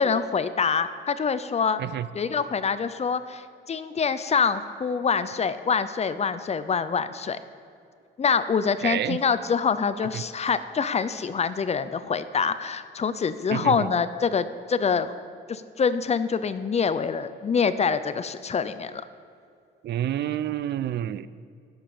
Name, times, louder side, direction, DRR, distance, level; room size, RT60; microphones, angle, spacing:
voice 1, 0.0-1.8 2.1-7.4 8.2-15.1 15.5-19.0, left 6 dB, 35° left, 13 dB, 0.5 m, -25 dB
voice 2, 8.8-9.2 10.1-10.2 13.5-13.9 19.8-21.3, right 11 dB, 60° right, 16 dB, 0.4 m, -28 dB
10.0 x 7.0 x 5.5 m, 2.3 s
cardioid pair, 90°, 20 cm